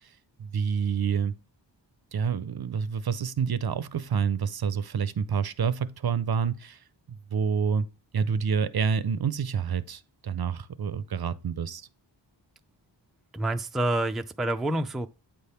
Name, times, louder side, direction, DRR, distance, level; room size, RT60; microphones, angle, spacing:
voice 1, 0.4-1.3 2.1-6.8 7.3-7.9 8.1-11.9, right 6 dB, 55° right, 0.6 m, -28 dB
voice 2, 13.3-15.1, right 1 dB, ahead, 0.4 m, -27 dB
8.8 x 3.4 x 5.6 m
wide cardioid pair, 80°, 45 cm